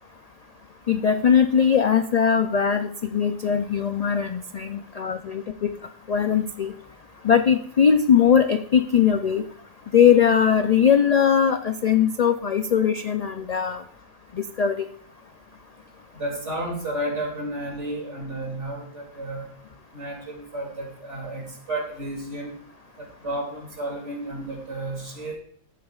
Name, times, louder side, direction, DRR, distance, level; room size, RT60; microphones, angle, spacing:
voice 1, 0.9-5.7 6.1-6.7 7.2-9.4 9.9-13.8 14.3-14.8, left 7 dB, 60° left, 8 dB, 0.4 m, -20 dB
voice 2, 16.1-19.5 19.9-22.5 23.0-25.4, right 1 dB, 65° right, 1 dB, 3.0 m, -32 dB
14.5 x 8.8 x 2.4 m, 0.63 s
omnidirectional pair, 1.3 m